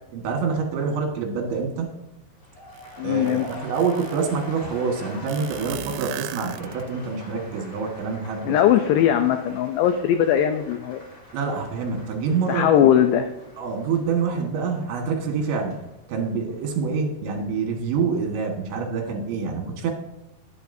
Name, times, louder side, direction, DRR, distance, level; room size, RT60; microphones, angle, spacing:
voice 1, 0.1-1.9 3.0-8.6 11.3-12.8 13.6-15.8 16.1-19.9, right 5 dB, 70° right, 1 dB, 3.7 m, -26 dB
sound 1, 2.3-18.3 18.6-19.1, left 1 dB, 35° left, 4.7 m, -46 dB
sound 2, 2.8-2.9 3.3-4.4 5.3-7.1, right 15 dB, 90° right, 3.1 m, -36 dB
voice 2, 3.0-3.5 8.4-11.0 12.5-13.3, left 10 dB, 85° left, 7 dB, 2.4 m, -19 dB
19.5 x 8.0 x 2.7 m, 0.92 s
omnidirectional pair, 5.6 m